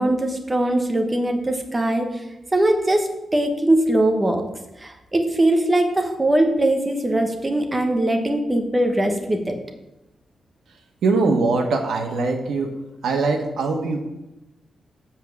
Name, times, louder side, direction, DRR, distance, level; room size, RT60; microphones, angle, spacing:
voice 1, 0.0-2.1 2.5-4.4 4.8-9.6, right 1 dB, 15° right, 4 dB, 1.0 m, -21 dB
voice 2, 11.0-12.7 13.0-14.1, right 3 dB, 90° right, 3 dB, 1.4 m, -22 dB
7.4 x 5.4 x 7.3 m, 0.96 s
wide cardioid pair, 155°, 0 cm